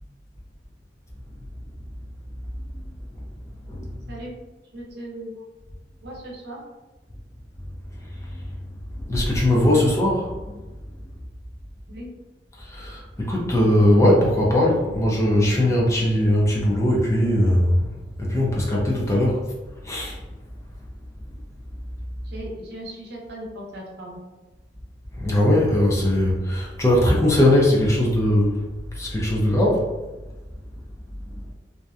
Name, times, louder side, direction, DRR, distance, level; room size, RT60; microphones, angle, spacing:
voice 1, 4.7-5.3 6.0-6.6 11.9-12.1 22.2-24.2, right 1 dB, 65° right, -3 dB, 0.7 m, -37 dB
voice 2, 9.0-10.3 12.6-17.9 18.2-19.4 19.8-20.2 25.1-28.6 28.9-29.9, left 1 dB, 15° left, -3 dB, 0.5 m, -20 dB
2.6 x 2.2 x 2.3 m, 1.2 s
head